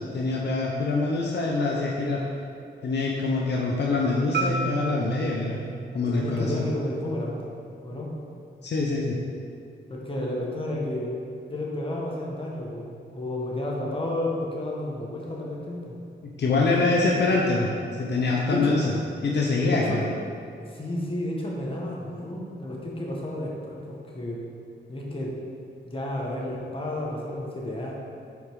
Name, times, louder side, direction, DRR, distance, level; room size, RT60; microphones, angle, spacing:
voice 1, 0.1-2.2 2.8-5.6 5.9-6.6 8.6-9.2 16.2-17.7 18.0-18.9 19.2-20.0, left 3 dB, 65° left, -2 dB, 0.7 m, -25 dB
Marimba xylophone, 4.3-8.5, right 3 dB, 60° right, 0.9 m, -34 dB
voice 2, 6.0-7.5 7.8-8.1 9.9-11.1 11.5-12.9 13.1-16.0 16.6-17.2 18.5-18.8 19.6-20.0 20.6-24.4 24.9-25.3 25.8-27.9, left 1 dB, 25° left, -3 dB, 1.4 m, -31 dB
5.3 x 4.8 x 4.7 m, 2.5 s
cardioid pair, 70°, 20 cm